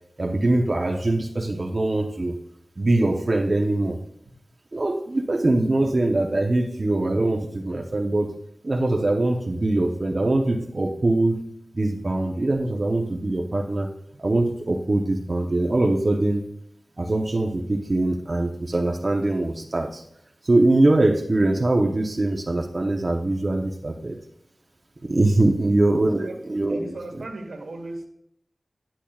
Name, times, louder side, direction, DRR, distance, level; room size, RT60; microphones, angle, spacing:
voice 1, 0.2-2.4 2.8-4.0 4.7-8.3 8.6-11.4 11.7-13.9 14.2-16.4 17.0-20.0 20.4-24.2 25.1-26.9, right 2 dB, 50° right, 2 dB, 0.8 m, -22 dB
voice 2, 26.7-28.1, right 2 dB, 85° right, 4 dB, 1.3 m, -37 dB
10.5 x 7.3 x 2.4 m, 0.72 s
cardioid pair, 40°, 0 cm